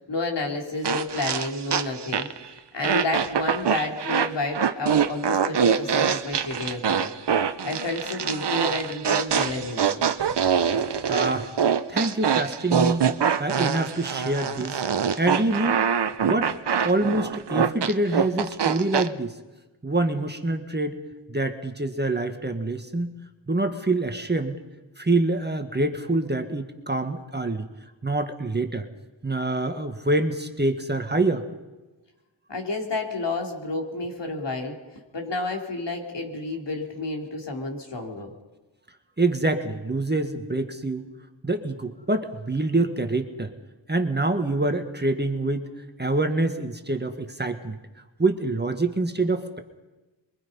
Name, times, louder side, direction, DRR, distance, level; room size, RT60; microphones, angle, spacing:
voice 1, 0.1-7.1 7.6-10.0 32.5-34.8 35.1-38.3, left 2 dB, 65° left, 2 dB, 4.1 m, -30 dB
sound 1, 0.8-2.5 2.8-19.1, right 7 dB, 60° right, 1.0 m, -24 dB
voice 2, 11.1-11.5 11.9-13.1 13.4-14.8 15.2-15.8 16.2-16.5 16.8-19.4 19.8-21.0 21.3-23.1 23.5-24.6 25.0-27.7 28.0-28.9 29.2-31.4 39.2-41.1 41.4-43.5 43.9-45.7 46.0-47.8 48.2-49.6, right 2 dB, 20° right, 6 dB, 1.8 m, -25 dB
27.5 x 23.5 x 5.6 m, 1.1 s
wide cardioid pair, 100°, 46 cm